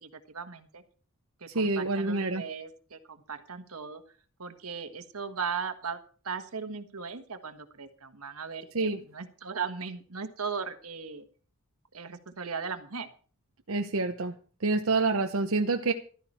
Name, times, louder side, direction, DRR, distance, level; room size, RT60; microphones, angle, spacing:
voice 1, 0.0-0.8 1.4-4.0 4.4-6.0 6.2-11.2 11.9-13.1, right 5 dB, 85° right, 8 dB, 1.5 m, -37 dB
voice 2, 1.5-2.4 8.7-9.0 13.7-14.3 14.6-15.9, right 3 dB, 65° right, 5 dB, 0.9 m, -27 dB
14.5 x 13.0 x 4.3 m, 0.42 s
head